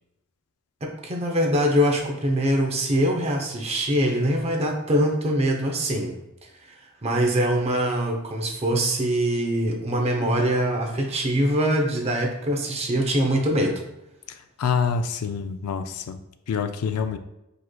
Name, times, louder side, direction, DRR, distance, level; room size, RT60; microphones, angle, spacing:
voice 1, 0.8-6.1 6.4-13.8, equal, 30° right, 2 dB, 0.7 m, -23 dB
voice 2, 14.3-16.2 16.5-17.2, left 6 dB, 85° left, 9 dB, 0.4 m, -27 dB
5.0 x 4.3 x 2.2 m, 0.90 s
head